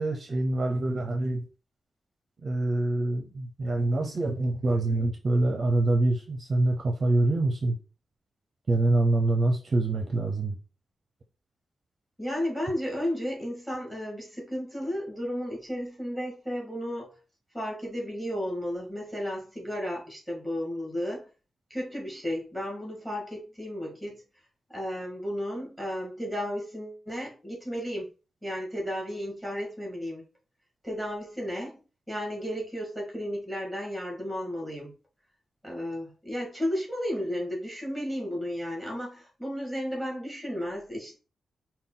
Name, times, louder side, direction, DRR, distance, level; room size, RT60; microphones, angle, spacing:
voice 1, 0.0-1.4 2.4-7.8 8.7-10.6, right 2 dB, 40° right, 0.6 m, -25 dB
voice 2, 12.2-17.1 17.5-21.3 21.7-24.2 24.7-28.1 28.4-30.2 30.8-31.8 32.1-34.9 35.6-41.2, equal, ahead, 1.8 m, -33 dB
5.5 x 2.3 x 3.8 m
wide cardioid pair, 150°, 0 cm